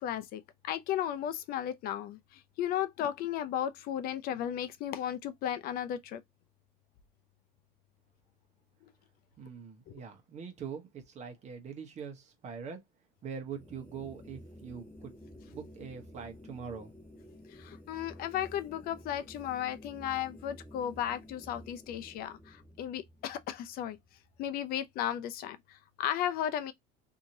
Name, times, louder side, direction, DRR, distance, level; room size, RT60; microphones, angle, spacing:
voice 1, 0.0-6.2 9.9-10.0 17.5-24.0 24.4-26.7, left 10 dB, 55° left, 0.4 m, -35 dB
voice 2, 9.4-12.8 13.2-15.1 15.5-16.9, right 6 dB, 40° right, 1.0 m, -43 dB
sound 1, 13.4-24.8, left 1 dB, 10° left, 0.9 m, -52 dB
2.8 x 2.8 x 2.6 m
supercardioid pair, 115°, 19 cm